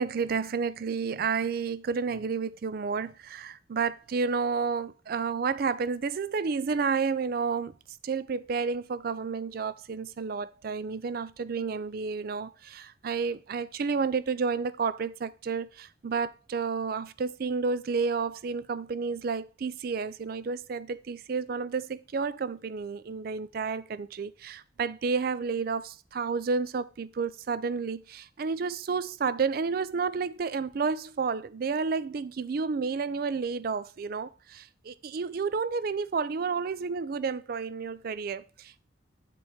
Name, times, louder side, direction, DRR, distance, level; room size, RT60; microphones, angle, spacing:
voice 1, 0.0-7.7 8.0-38.8, right 5 dB, 50° right, 0.4 m, -31 dB
8.6 x 4.6 x 4.3 m
head